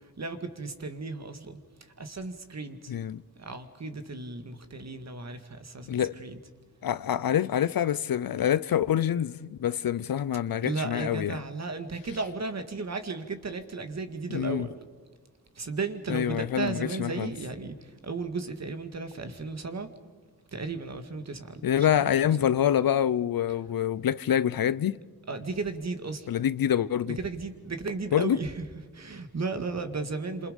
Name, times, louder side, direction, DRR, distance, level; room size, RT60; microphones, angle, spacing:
voice 1, 0.0-1.6 2.0-2.9 3.4-6.4 10.6-14.7 15.6-19.9 20.5-21.6 22.0-22.5 25.3-26.3 27.1-28.5 28.9-30.5, right 3 dB, 45° right, 2.0 m, -35 dB
voice 2, 2.9-3.2 5.9-6.2 6.8-11.4 14.3-14.7 16.1-17.3 21.6-25.0 26.3-27.2 28.1-28.4, left 10 dB, 65° left, 0.7 m, -26 dB
28.5 x 27.0 x 5.3 m
wide cardioid pair, 90°, 37 cm